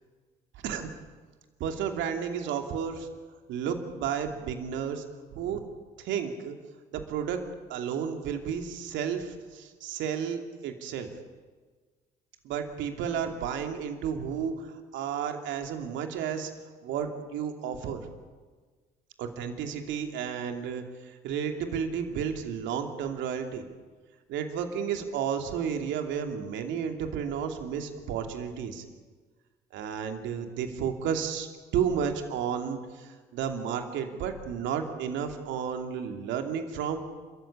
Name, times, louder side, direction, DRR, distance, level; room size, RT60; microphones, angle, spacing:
voice 1, 1.6-3.1 3.5-5.0 5.3-5.6 6.0-6.5 6.9-7.4 7.7-11.1 12.4-16.5 16.8-18.0 19.2-23.6 24.3-28.8 29.7-31.5 31.7-37.0, right 7 dB, 70° right, 5 dB, 2.7 m, -32 dB
29.0 x 14.5 x 8.6 m, 1.4 s
hypercardioid pair, 55°, 20 cm